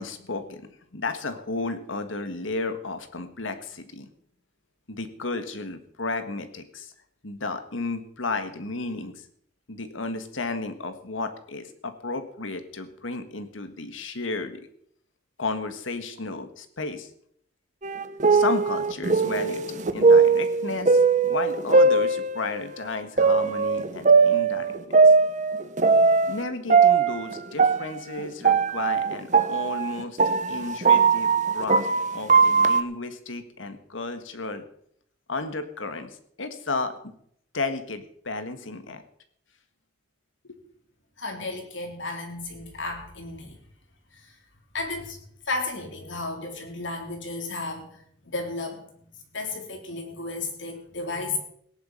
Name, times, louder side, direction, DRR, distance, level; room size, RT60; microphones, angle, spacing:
voice 1, 0.0-4.1 4.9-6.9 7.2-9.3 9.7-14.6 15.4-17.1 18.3-25.1 26.3-30.2 30.5-31.9 32.1-34.7 35.3-37.1 37.5-39.0 40.4-40.6, left 3 dB, 90° left, 9 dB, 1.7 m, -33 dB
sound 1, 17.8-22.7 23.2-26.4 26.7-32.8, right 4 dB, 40° right, 1.0 m, -20 dB
voice 2, 41.2-43.6 44.1-44.4 44.7-45.2 45.5-51.4, left 3 dB, 70° left, 2 dB, 3.9 m, -34 dB
18.0 x 10.5 x 5.7 m, 0.68 s
head